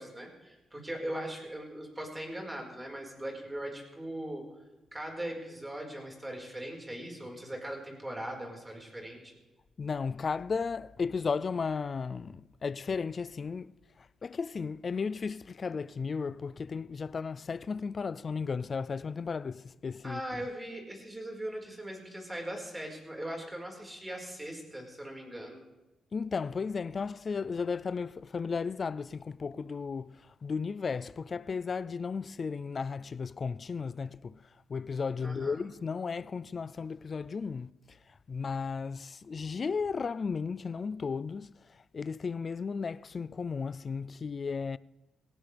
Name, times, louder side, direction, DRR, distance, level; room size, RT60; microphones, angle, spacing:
voice 1, 0.0-4.4 4.9-9.3 20.0-25.6 35.2-35.6, right 1 dB, 15° right, 4.8 m, -40 dB
voice 2, 9.8-13.7 14.0-20.2 26.1-34.4 34.7-44.8, left 5 dB, 40° left, 0.4 m, -35 dB
18.0 x 18.0 x 3.4 m
cardioid pair, 90°, 0 cm